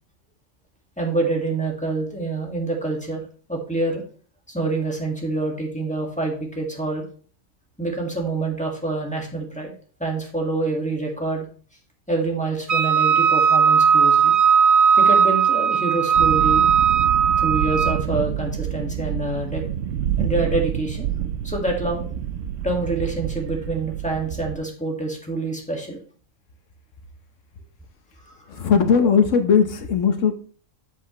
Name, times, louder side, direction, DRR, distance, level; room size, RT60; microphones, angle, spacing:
voice 1, 1.0-3.2 3.5-4.0 4.5-7.0 7.8-9.7 10.0-11.5 12.1-14.3 15.0-16.7 17.4-19.6 20.2-21.1 21.4-22.1 22.6-26.0 28.6-28.7, right 2 dB, 5° left, 0 dB, 1.8 m, -26 dB
Wind instrument woodwind instrument, 12.7-18.0, right 7 dB, 50° right, 0.4 m, -17 dB
sound 1, 16.1-24.6, right 9 dB, 70° right, 1.0 m, -28 dB
voice 2, 28.5-30.3, left 6 dB, 65° left, 7 dB, 1.3 m, -18 dB
7.7 x 7.6 x 3.1 m, 0.43 s
omnidirectional pair, 1.4 m